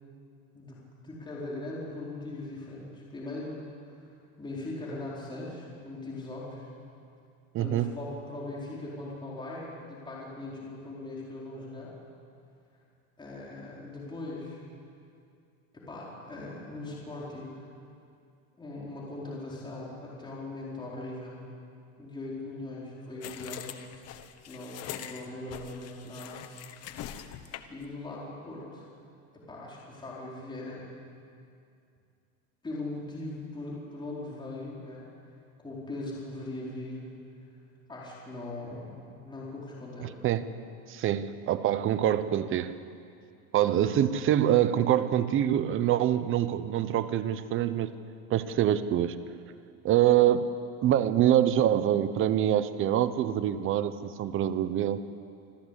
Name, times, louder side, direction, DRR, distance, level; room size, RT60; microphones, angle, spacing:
voice 1, 0.5-4.1 4.4-6.7 7.6-11.9 13.2-14.6 15.7-17.7 18.6-21.4 22.0-23.7 24.5-26.4 27.7-28.9 29.3-30.9 32.6-35.1 35.6-37.1 37.9-40.1, left 2 dB, 10° left, -5 dB, 4.5 m, -40 dB
voice 2, 7.5-7.9 40.0-40.4 40.9-42.7 43.5-47.9 48.3-49.2 49.8-50.5 50.8-55.0, right 11 dB, 30° right, 13 dB, 0.9 m, -25 dB
sound 1, 23.2-27.8, left 11 dB, 35° left, 1.2 m, -43 dB
26.0 x 14.5 x 8.4 m, 2.5 s
supercardioid pair, 140°, 43 cm